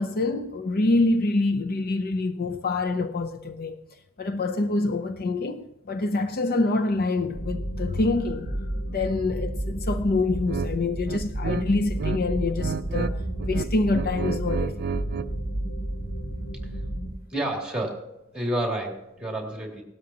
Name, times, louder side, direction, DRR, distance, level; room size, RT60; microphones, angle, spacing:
voice 1, 0.0-3.8 4.2-8.5 8.9-14.9, left 2 dB, 50° left, 0.6 m, -26 dB
sound 1, 7.3-17.1, right 1 dB, 80° left, 3.6 m, -31 dB
sound 2, 10.5-10.7 11.1-12.2 12.5-13.1 13.4-15.3, right 5 dB, 50° right, 0.4 m, -31 dB
voice 2, 17.3-19.8, right 1 dB, 5° right, 2.6 m, -30 dB
18.0 x 12.5 x 2.9 m
head